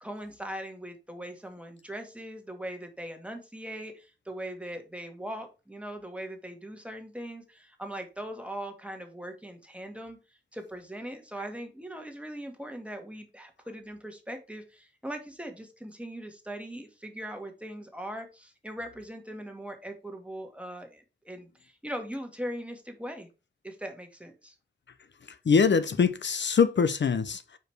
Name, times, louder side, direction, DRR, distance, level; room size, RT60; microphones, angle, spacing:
voice 1, 0.0-10.2 10.5-23.3 23.6-24.5, right 1 dB, 5° right, 1.5 m, -40 dB
voice 2, 25.5-27.6, left 6 dB, 80° left, 0.5 m, -23 dB
4.9 x 4.7 x 4.5 m
wide cardioid pair, 75°, 18 cm